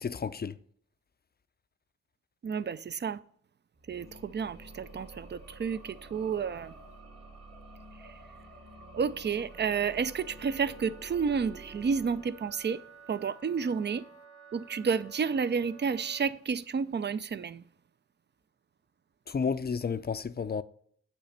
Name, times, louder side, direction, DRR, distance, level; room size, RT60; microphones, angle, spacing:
voice 1, 0.0-0.5 19.3-20.6, left 6 dB, 30° left, 0.5 m, -31 dB
voice 2, 2.4-3.2 3.9-6.7 8.0-8.1 8.9-12.8 13.1-14.1 14.5-17.6, right 6 dB, 35° right, 0.5 m, -31 dB
sound 1, 3.7-12.8, right 2 dB, 55° right, 2.2 m, -50 dB
Wind instrument woodwind instrument, 9.4-16.4, right 5 dB, 85° right, 2.1 m, -54 dB
8.6 x 3.2 x 6.4 m
supercardioid pair, 45°, 31 cm